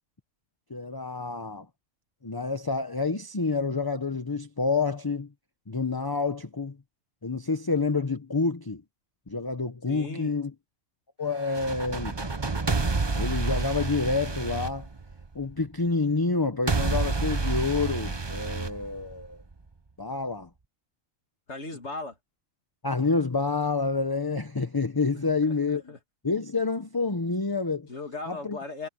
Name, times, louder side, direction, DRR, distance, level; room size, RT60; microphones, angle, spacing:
voice 1, 0.7-1.7 2.2-5.3 5.7-6.8 7.2-8.8 9.3-10.5 11.2-12.1 13.1-14.9 15.3-19.4 20.0-20.5 22.8-25.8 26.2-27.9 28.3-28.6, left 4 dB, 20° left, 0.7 m, -28 dB
voice 2, 9.9-10.3 21.5-22.2 25.1-26.0 27.9-28.9, left 3 dB, 55° left, 2.9 m, -38 dB
sound 1, 11.4-15.5 16.7-19.5, right 3 dB, 20° right, 0.9 m, -29 dB
omnidirectional pair, 1.4 m